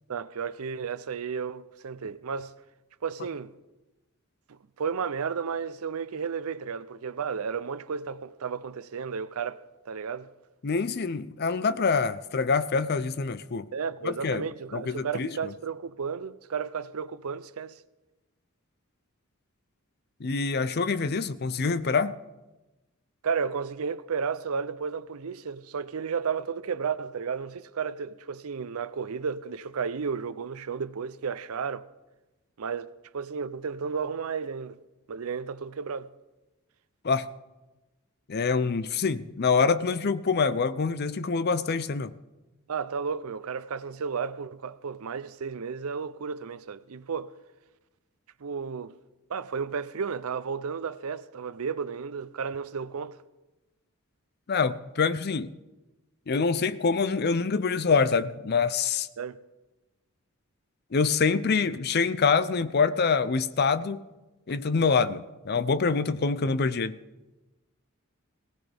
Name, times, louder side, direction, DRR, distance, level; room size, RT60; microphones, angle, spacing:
voice 1, 0.1-2.5 3.0-3.5 4.5-10.3 13.7-17.8 23.2-31.9 32.6-34.8 35.1-36.1 42.7-47.4 48.4-49.0 49.3-53.2 59.2-59.4, right 6 dB, 85° right, 0.6 m, -33 dB
voice 2, 10.6-13.7 14.0-14.5 14.7-15.3 20.2-22.2 37.0-37.3 38.3-42.1 54.5-55.5 56.3-59.1 60.9-64.1 64.5-67.0, left 5 dB, 50° left, 0.5 m, -25 dB
18.5 x 17.5 x 3.5 m
head